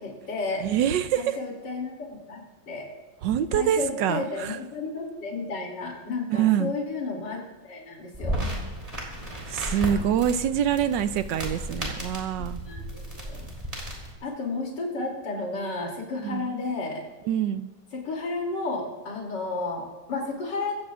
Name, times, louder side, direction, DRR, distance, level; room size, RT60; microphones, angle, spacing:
voice 1, 0.0-0.7 1.2-2.9 3.5-7.4 7.6-8.4 12.4-12.8 13.1-13.5 14.2-17.0 17.9-20.8, left 3 dB, 60° left, -1 dB, 3.5 m, -32 dB
voice 2, 0.6-1.4 3.2-4.6 6.3-6.7 9.5-12.6 16.2-16.5 17.3-17.7, right 10 dB, 70° right, 11 dB, 1.2 m, -25 dB
sound 1, 8.1-14.1, equal, 15° right, 3.7 m, -34 dB
24.0 x 15.5 x 2.5 m, 1.2 s
omnidirectional pair, 2.2 m